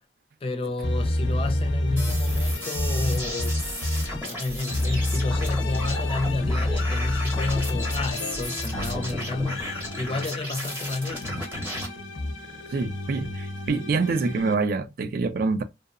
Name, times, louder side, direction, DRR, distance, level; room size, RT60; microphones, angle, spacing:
voice 1, 0.4-3.6 4.2-11.4, left 3 dB, 30° left, 0.4 m, -31 dB
sound 1, 0.8-4.3 4.7-10.2 10.7-14.5, left 1 dB, 85° left, 0.5 m, -29 dB
sound 2, 2.0-11.9, left 1 dB, 10° right, 0.8 m, -34 dB
sound 3, 2.3-2.5 2.7-2.9 3.2-3.3 3.6-3.7 4.0-4.2 4.5-4.6 4.9-5.0 5.3-5.9 6.2-6.3 6.6-6.7 7.0-7.2 7.5-7.6 7.9-8.0 8.3-8.5 8.7-9.0, equal, 80° right, 0.8 m, -38 dB
voice 2, 12.7-15.6, right 4 dB, 50° right, 0.3 m, -26 dB
2.7 x 2.0 x 2.4 m
head